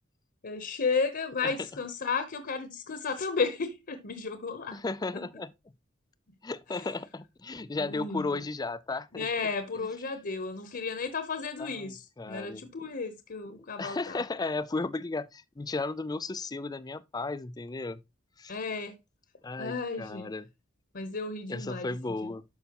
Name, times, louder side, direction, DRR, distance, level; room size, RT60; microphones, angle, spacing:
voice 1, 0.4-4.8 7.8-8.2 9.1-12.0 12.3-14.2 18.5-18.9 19.6-20.3 20.9-21.9, left 4 dB, 50° left, 0.9 m, -33 dB
voice 2, 1.4-1.8 4.7-5.5 6.4-10.1 11.6-12.7 13.5-18.0 18.4-18.5 19.4-20.5 21.5-22.4, left 3 dB, 20° left, 0.4 m, -35 dB
12.0 x 5.5 x 3.0 m
head